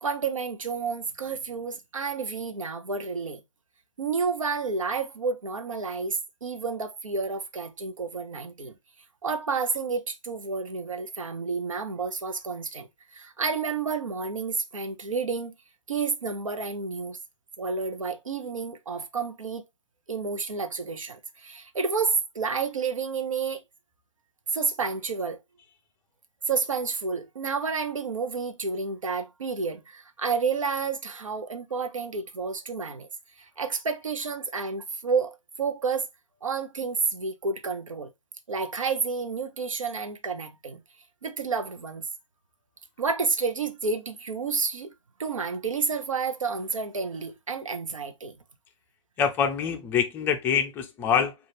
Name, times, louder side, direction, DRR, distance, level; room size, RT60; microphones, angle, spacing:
voice 1, 0.0-3.4 4.0-8.7 9.2-15.5 15.9-17.2 17.6-19.6 20.1-23.6 24.5-25.4 26.5-33.1 33.4-36.1 36.4-38.1 38.5-40.8 41.2-42.1 43.0-44.9 45.2-48.3, right 5 dB, 90° right, 0.7 m, -30 dB
voice 2, 49.2-51.3, left 7 dB, 15° left, 0.4 m, -25 dB
3.9 x 2.4 x 3.2 m
hypercardioid pair, 140°, 16 cm